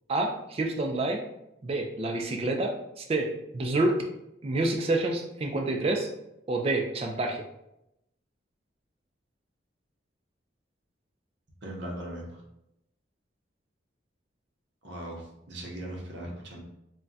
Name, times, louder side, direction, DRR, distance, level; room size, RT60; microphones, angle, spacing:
voice 1, 0.1-1.2 1.6-4.0 4.4-6.1 6.5-7.4, right 2 dB, 30° right, 3 dB, 0.3 m, -28 dB
voice 2, 11.6-12.4 14.8-16.6, right 1 dB, 65° right, -1 dB, 0.7 m, -39 dB
2.3 x 2.2 x 3.9 m, 0.85 s
head